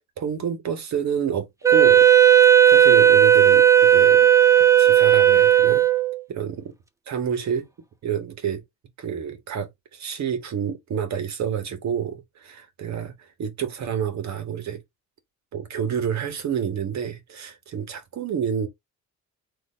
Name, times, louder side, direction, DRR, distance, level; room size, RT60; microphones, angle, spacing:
voice 1, 0.2-2.1 2.4-4.3 4.8-5.9 6.3-6.7 7.1-7.7 8.0-8.6 9.0-14.8 15.5-18.7, right 8 dB, 65° right, 1.7 m, -29 dB
Wind instrument woodwind instrument, 1.6-6.2, right 10 dB, 10° right, 0.9 m, -14 dB
4.1 x 3.1 x 4.1 m
cardioid pair, 90°, 30 cm